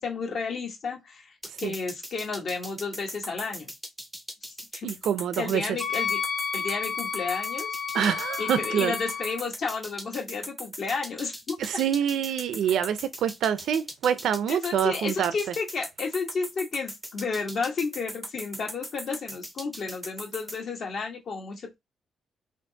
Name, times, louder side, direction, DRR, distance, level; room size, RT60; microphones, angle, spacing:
voice 1, 0.0-1.3 1.6-3.7 4.4-4.9 5.4-6.2 6.5-7.7 8.4-11.6 14.5-21.7, left 4 dB, 50° left, 1.3 m, -32 dB
sound 1, 1.4-20.6, equal, 5° right, 0.5 m, -39 dB
voice 2, 4.8-5.6 7.9-9.0 11.6-15.3, right 9 dB, 80° right, 0.5 m, -26 dB
Wind instrument woodwind instrument, 5.8-9.4, left 7 dB, 80° left, 1.0 m, -31 dB
4.4 x 2.9 x 2.7 m
cardioid pair, 160°, 0 cm